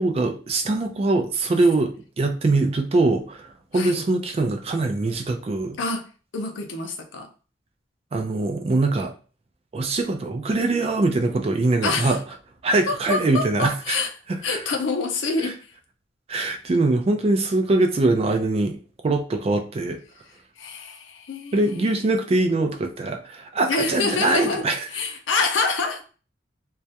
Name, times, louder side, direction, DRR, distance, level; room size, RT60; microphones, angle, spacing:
voice 1, 0.0-5.8 8.1-9.1 9.7-12.2 12.6-14.0 14.3-14.6 16.3-18.8 19.0-20.0 21.5-24.8, right 2 dB, 35° right, 0.3 m, -22 dB
voice 2, 3.7-4.0 5.8-7.3 11.8-12.2 12.9-14.1 14.4-15.6 20.6-21.9 23.7-26.0, left 4 dB, 85° left, 0.5 m, -27 dB
2.3 x 2.1 x 2.7 m
head